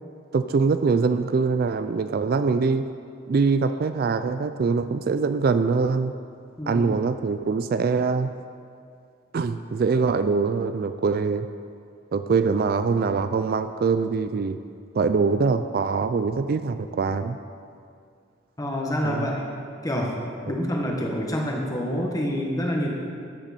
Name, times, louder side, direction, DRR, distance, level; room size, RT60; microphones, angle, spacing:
voice 1, 0.3-2.9 3.3-6.1 6.7-8.3 9.3-11.5 12.1-14.6 14.9-17.4 19.0-19.3, right 4 dB, 50° right, 10 dB, 0.3 m, -23 dB
voice 2, 6.6-6.9 18.6-19.5 19.8-20.1 20.5-22.9, equal, 15° left, 0 dB, 1.3 m, -27 dB
13.0 x 8.9 x 4.2 m, 2.3 s
head